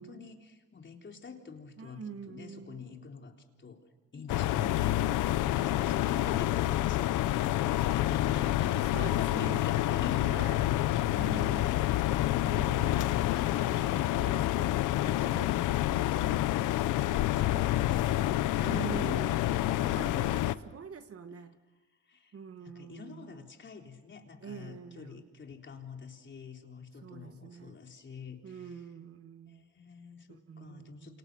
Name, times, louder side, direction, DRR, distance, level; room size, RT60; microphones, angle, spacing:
voice 1, 0.0-10.3 11.3-12.0 17.0-20.0 22.1-28.8 29.5-31.2, left 5 dB, 40° left, 2 dB, 3.9 m, -46 dB
voice 2, 1.8-2.9 4.5-5.0 5.4-6.4 8.4-8.5 8.9-9.6 10.2-11.7 12.2-13.2 13.5-14.7 15.0-15.5 15.9-16.7 17.1-17.8 18.6-19.3 19.8-21.6 22.3-23.4 24.4-25.3 27.0-27.8 28.4-29.6 30.3-31.2, right 6 dB, 50° right, 8 dB, 1.8 m, -45 dB
sound 1, 4.3-20.5, left 15 dB, 90° left, 0.8 m, -28 dB
28.5 x 28.0 x 6.4 m, 1.2 s
cardioid pair, 90°, 30 cm